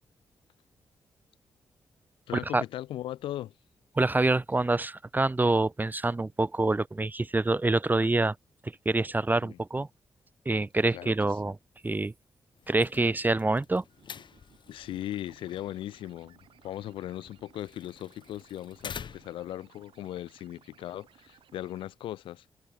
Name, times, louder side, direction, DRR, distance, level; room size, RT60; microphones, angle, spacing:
voice 1, 2.3-3.5 9.4-9.6 10.9-11.1 14.7-22.4, left 13 dB, 90° left, 0.7 m, -38 dB
voice 2, 4.0-8.4 8.6-9.9 10.5-11.6 11.8-12.1 12.7-13.8, right 2 dB, 20° right, 0.6 m, -26 dB
sound 1, 12.6-19.5, left 7 dB, 65° left, 4.2 m, -48 dB
sound 2, 13.9-21.9, right 10 dB, 85° right, 5.2 m, -61 dB
supercardioid pair, 55°, 9 cm